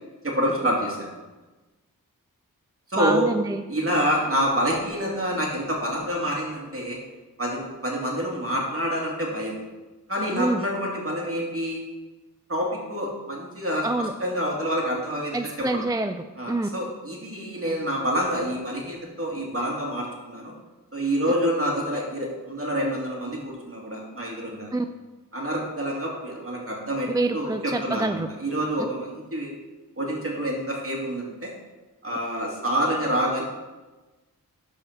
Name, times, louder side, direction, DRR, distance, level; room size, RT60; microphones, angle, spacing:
voice 1, 0.2-1.1 2.9-3.3 3.7-7.0 7.4-9.6 10.1-11.8 12.5-15.4 15.7-15.8 16.4-20.5 20.9-24.7 25.3-29.5 30.0-31.5 32.0-33.4, equal, 40° right, -2 dB, 2.8 m, -27 dB
voice 2, 3.0-3.6 10.4-10.6 13.8-14.1 15.3-16.2 16.5-16.7 24.7-24.9 27.1-28.3, right 2 dB, 10° right, 8 dB, 0.4 m, -26 dB
12.5 x 5.0 x 4.4 m, 1.2 s
cardioid pair, 50°, 35 cm